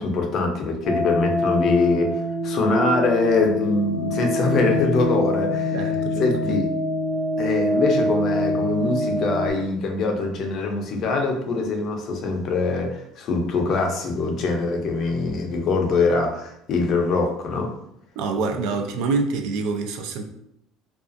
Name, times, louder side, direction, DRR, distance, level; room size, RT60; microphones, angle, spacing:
voice 1, 0.0-5.8 6.2-6.7 7.4-17.7, left 3 dB, 45° left, 3 dB, 0.5 m, -23 dB
sound 1, 0.8-9.5, left 1 dB, 5° right, 0.6 m, -24 dB
voice 2, 5.7-6.6 18.2-20.3, right 4 dB, 70° right, 4 dB, 0.4 m, -26 dB
2.4 x 2.3 x 2.5 m, 0.74 s
cardioid pair, 135°, 0 cm